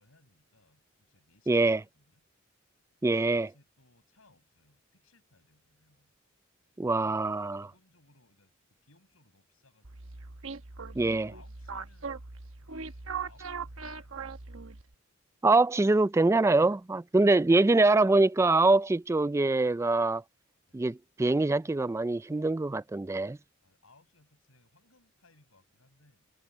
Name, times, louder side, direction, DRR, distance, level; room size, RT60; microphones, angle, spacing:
voice 1, 0.0-2.2 3.1-6.1 7.0-8.5 8.8-10.4 11.0-14.1 20.7-20.9 23.6-26.3, left 2 dB, 85° left, 6.8 m, -65 dB
voice 2, 1.5-1.8 3.0-3.5 6.8-7.6 11.0-11.3 15.4-20.2 20.7-23.4, right 2 dB, 15° right, 0.3 m, -24 dB
sound 1, 9.8-14.9, right 5 dB, 75° right, 1.2 m, -40 dB
head